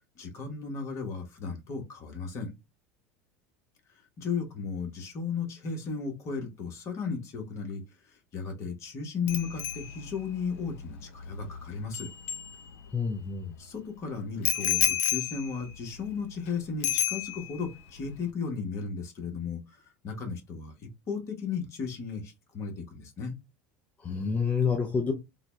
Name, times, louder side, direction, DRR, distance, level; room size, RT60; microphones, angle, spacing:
voice 1, 0.2-2.5 4.2-12.1 13.6-19.6 20.0-23.3, left 5 dB, 45° left, 1.3 m, -35 dB
Bicycle bell, 9.3-13.1 14.4-16.5 16.8-17.7 18.0-18.3, left 9 dB, 75° left, 0.7 m, -32 dB
voice 2, 12.9-13.5 24.0-25.1, left 5 dB, 20° left, 0.6 m, -28 dB
3.7 x 2.3 x 3.1 m
hypercardioid pair, 100°, 7 cm